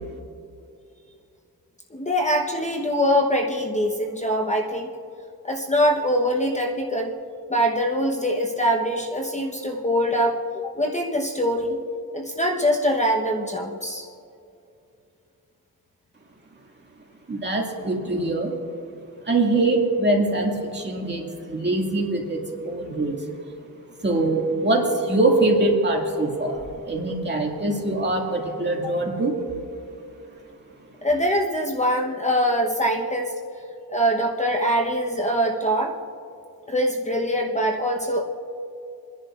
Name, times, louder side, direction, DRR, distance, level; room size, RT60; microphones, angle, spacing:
voice 1, 1.9-4.9 5.4-7.2 7.5-11.8 12.1-14.1 31.0-33.3 33.9-35.9 36.7-38.2, equal, 20° left, 1 dB, 1.0 m, -23 dB
voice 2, 17.3-18.5 19.2-23.2 24.0-29.4, right 2 dB, 30° right, 0 dB, 2.2 m, -23 dB
29.0 x 10.5 x 2.5 m, 2.6 s
cardioid pair, 95°, 37 cm